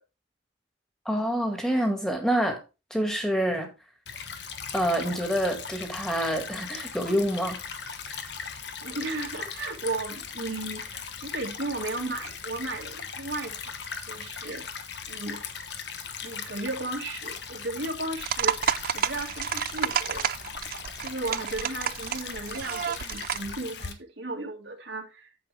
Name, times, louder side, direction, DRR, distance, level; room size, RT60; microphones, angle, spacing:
voice 1, 1.1-2.6 2.9-3.7 4.7-7.6, equal, 5° left, 1.9 m, -27 dB
Stream / Trickle dribble, 4.1-23.9, left 6 dB, 60° left, 1.1 m, -39 dB
voice 2, 8.8-13.8 14.1-14.6 15.1-15.4 16.2-18.6 18.9-20.3 21.0-25.3, right 2 dB, 75° right, 2.1 m, -35 dB
sound 1, 18.2-23.5, right 8 dB, 45° right, 0.3 m, -30 dB
9.2 x 7.6 x 3.4 m
head